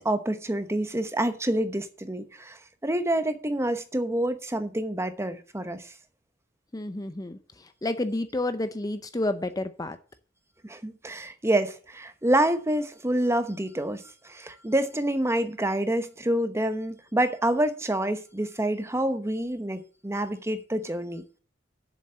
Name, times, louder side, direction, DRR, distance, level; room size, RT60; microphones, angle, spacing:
voice 1, 0.0-5.9 10.6-21.2, right 1 dB, 15° right, 0.9 m, -27 dB
voice 2, 6.7-10.0, left 2 dB, 20° left, 0.6 m, -30 dB
7.2 x 7.2 x 7.6 m
head